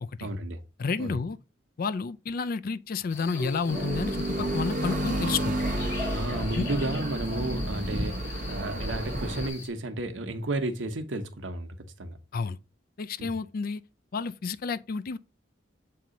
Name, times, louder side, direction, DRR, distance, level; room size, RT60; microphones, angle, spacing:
voice 1, 0.2-0.6 1.0-1.2 6.1-12.2 13.2-13.3, right 2 dB, 80° right, 1.0 m, -33 dB
voice 2, 0.8-1.4 1.8-5.6 6.6-6.7 12.3-12.6 13.0-13.8 14.1-15.2, left 4 dB, 50° left, 0.4 m, -30 dB
sound 1, 3.1-9.7, left 3 dB, 80° left, 3.0 m, -40 dB
sound 2, 3.7-9.5, right 1 dB, 45° right, 1.0 m, -30 dB
7.5 x 2.8 x 5.0 m
head